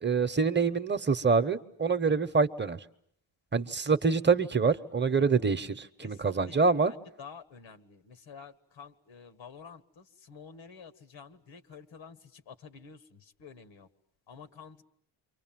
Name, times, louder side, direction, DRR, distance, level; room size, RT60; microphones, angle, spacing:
voice 1, 0.0-2.8 3.5-6.9, right 5 dB, 25° right, 11 dB, 1.0 m, -26 dB
voice 2, 9.4-9.8 10.3-10.9 11.1-11.3 11.7-12.1 12.8-13.0 13.4-13.5 14.4-14.7, left 6 dB, 75° left, 10 dB, 1.8 m, -46 dB
28.5 x 25.0 x 7.6 m, 0.68 s
cardioid pair, 105°, 46 cm